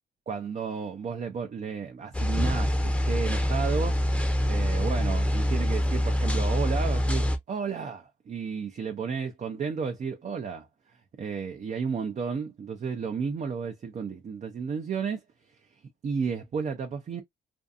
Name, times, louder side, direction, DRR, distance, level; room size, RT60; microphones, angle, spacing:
voice 1, 0.3-4.0 4.5-15.2 15.5-17.2, right 6 dB, 35° right, 0.5 m, -33 dB
sound 1, 2.1-7.4, equal, 5° left, 0.7 m, -25 dB
2.5 x 2.4 x 2.3 m
cardioid pair, 90°, 20 cm